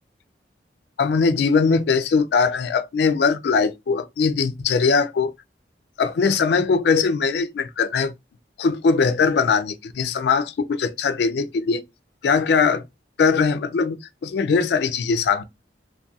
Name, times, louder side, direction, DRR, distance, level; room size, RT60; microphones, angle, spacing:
voice 1, 1.0-5.3 6.0-8.1 8.6-11.8 12.2-12.8 13.2-15.4, left 5 dB, 65° left, 0.3 m, -21 dB
2.6 x 2.1 x 2.3 m
head